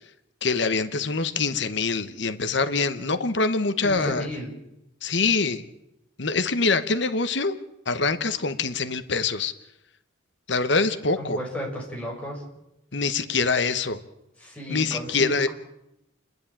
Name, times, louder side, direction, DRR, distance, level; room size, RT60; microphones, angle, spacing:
voice 1, 0.4-4.2 5.0-5.6 6.2-7.6 7.9-9.5 10.5-11.4 12.9-14.0 14.7-15.5, left 4 dB, 60° left, 11 dB, 1.1 m, -24 dB
voice 2, 3.8-4.5 11.2-12.4 14.4-15.5, left 1 dB, 5° left, -3 dB, 6.2 m, -33 dB
29.5 x 11.0 x 8.8 m, 0.85 s
head